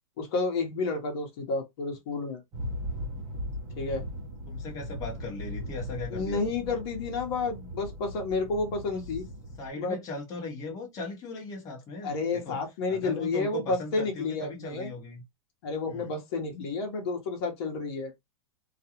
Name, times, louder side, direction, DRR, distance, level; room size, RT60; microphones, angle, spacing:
voice 1, 0.2-2.4 3.8-4.0 6.1-9.2 9.8-10.0 12.0-14.9 15.6-18.1, left 3 dB, 45° left, 1.0 m, -30 dB
sound 1, 2.5-9.7, equal, 20° right, 0.8 m, -38 dB
voice 2, 4.5-6.7 8.9-9.0 9.6-12.6 12.9-15.2 15.9-16.1, left 3 dB, 20° left, 0.9 m, -38 dB
2.4 x 2.2 x 2.9 m
supercardioid pair, 165°, 18 cm